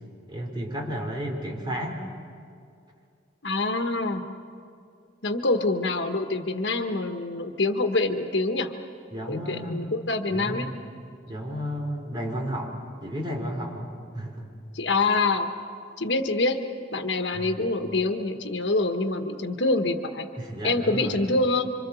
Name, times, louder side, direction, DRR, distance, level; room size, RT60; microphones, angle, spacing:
voice 1, 0.3-2.0 9.1-9.9 10.3-10.7 11.3-14.5 17.3-17.6 20.4-21.2, equal, 25° right, 0 dB, 3.8 m, -33 dB
voice 2, 3.4-4.2 5.2-8.7 9.3-10.7 14.7-15.5 16.0-16.6 16.9-20.3 20.6-21.7, left 2 dB, 75° left, 6 dB, 1.3 m, -25 dB
27.0 x 25.5 x 7.0 m, 2.4 s
head